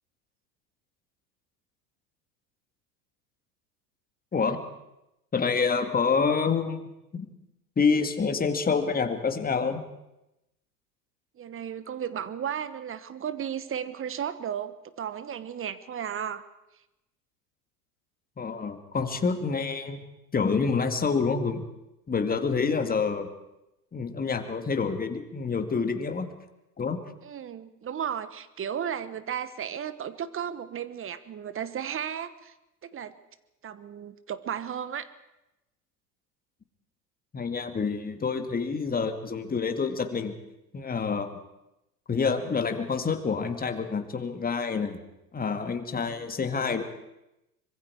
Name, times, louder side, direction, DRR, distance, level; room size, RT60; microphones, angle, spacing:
voice 1, 5.3-6.8 7.1-7.3 7.8-9.8 18.4-20.0 20.3-21.6 22.1-23.3 23.9-26.3 26.8-27.0 37.3-40.3 40.7-41.4 42.1-45.0 45.3-46.8, left 5 dB, 20° left, 7 dB, 2.2 m, -27 dB
voice 2, 11.4-16.4 27.2-32.5 32.8-33.2 33.6-35.1, right 8 dB, 25° right, 14 dB, 1.2 m, -34 dB
24.5 x 22.5 x 4.8 m, 0.91 s
hypercardioid pair, 85°, 47 cm